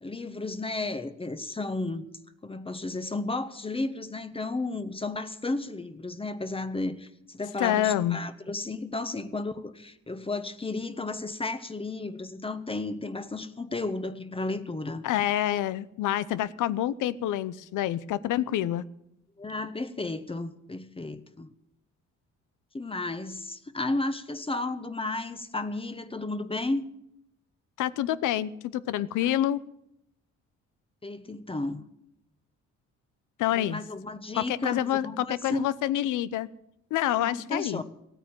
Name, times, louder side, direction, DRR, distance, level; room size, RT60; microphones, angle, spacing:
voice 1, 0.0-2.0 2.4-15.0 19.4-21.5 22.7-26.9 29.2-29.3 31.0-31.8 33.5-35.7 37.2-37.8, left 2 dB, 20° left, 10 dB, 1.2 m, -33 dB
voice 2, 7.6-8.2 15.0-18.8 27.8-29.6 33.4-33.8 34.3-36.5 36.9-37.8, left 12 dB, 85° left, 17 dB, 0.8 m, -27 dB
16.0 x 9.2 x 9.0 m, 0.78 s
cardioid pair, 90°, 30 cm